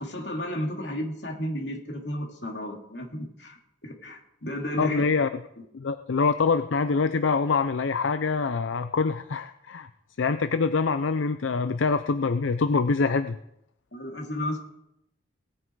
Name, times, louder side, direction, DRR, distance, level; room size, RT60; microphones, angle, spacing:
voice 1, 0.0-5.0 13.9-14.6, left 1 dB, 60° left, 1 dB, 2.8 m, -33 dB
voice 2, 4.8-5.3 5.7-9.9 10.2-13.4, left 4 dB, 85° left, 10 dB, 0.5 m, -25 dB
18.0 x 9.4 x 4.7 m, 0.82 s
head